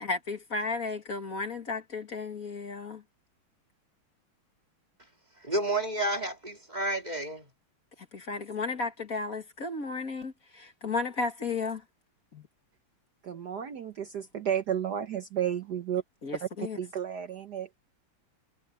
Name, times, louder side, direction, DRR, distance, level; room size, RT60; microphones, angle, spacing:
voice 1, 0.0-3.0 8.1-11.8 12.3-12.5 16.2-16.8, left 4 dB, 40° left, 2.4 m, -34 dB
voice 2, 5.4-7.5, right 1 dB, 20° right, 2.2 m, -30 dB
voice 3, 13.2-16.0 16.4-16.5 16.8-17.7, right 9 dB, 55° right, 1.4 m, -32 dB
omnidirectional pair, 2.4 m